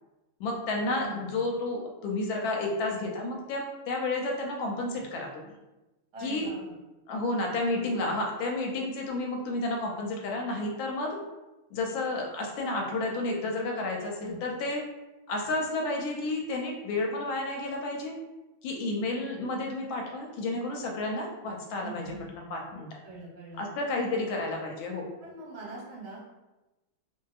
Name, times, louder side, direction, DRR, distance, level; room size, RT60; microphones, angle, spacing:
voice 1, 0.4-5.5 6.2-6.5 7.1-11.2 11.7-14.8 15.3-18.2 18.6-22.9 23.6-25.1, left 2 dB, 80° left, 0 dB, 1.4 m, -31 dB
voice 2, 0.9-1.3 6.1-6.7 14.2-14.4 21.8-22.2 23.0-23.6 25.2-26.3, right 3 dB, 75° right, -5 dB, 1.6 m, -42 dB
3.1 x 2.7 x 2.3 m, 1.1 s
omnidirectional pair, 2.2 m